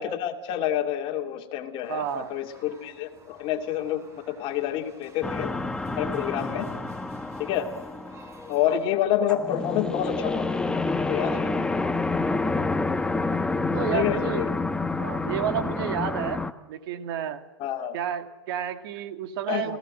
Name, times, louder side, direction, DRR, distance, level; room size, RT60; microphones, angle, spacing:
voice 1, 0.0-5.5 6.0-6.7 7.4-7.7 8.5-10.6 11.0-11.7 13.3-13.5 13.8-14.5 15.9-16.0 17.6-18.0 19.5-19.8, left 11 dB, 40° left, 4 dB, 2.6 m, -28 dB
sound 1, 1.8-8.9, right 1 dB, 20° right, 4.8 m, -52 dB
voice 2, 1.9-2.3 13.7-14.4 15.0-17.4 17.9-19.8, right 9 dB, 60° right, 8 dB, 2.1 m, -31 dB
sound 2, 5.2-16.5, left 3 dB, 5° left, 1.2 m, -28 dB
27.5 x 17.0 x 7.8 m, 1.1 s
hypercardioid pair, 120°, 14 cm